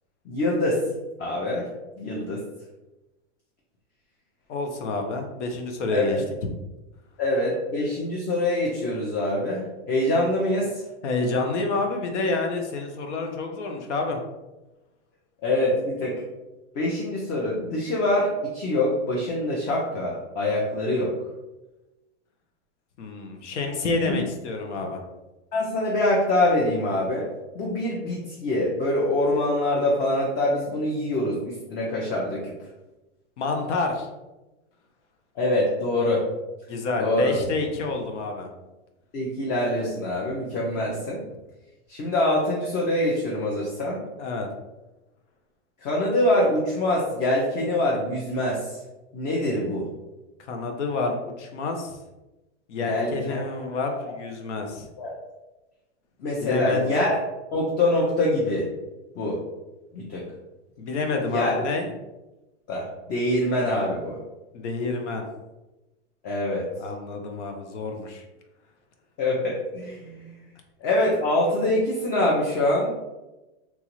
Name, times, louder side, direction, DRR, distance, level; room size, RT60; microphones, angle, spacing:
voice 1, 0.3-0.8 1.2-1.7 2.0-2.4 5.9-6.2 7.2-10.8 15.4-16.2 16.7-21.1 24.1-24.2 25.5-27.3 27.5-32.5 35.4-36.2 37.0-37.3 39.1-41.2 41.9-44.0 45.8-48.8 49.1-49.9 52.8-53.4 55.0-55.1 56.2-57.2 57.5-58.7 59.2-59.4 59.9-60.3 61.3-61.5 62.7-64.2 66.2-66.7 69.2-70.3 70.8-73.0, left 1 dB, 30° left, -3 dB, 0.6 m, -24 dB
voice 2, 4.5-6.2 11.0-14.2 23.0-25.0 33.4-34.1 36.7-38.5 44.2-44.5 50.5-52.0 52.7-54.9 56.4-56.9 60.8-61.9 64.5-65.2 66.8-68.2, left 3 dB, 85° left, 3 dB, 0.7 m, -28 dB
3.0 x 2.3 x 3.0 m, 1.0 s
hypercardioid pair, 130°, 34 cm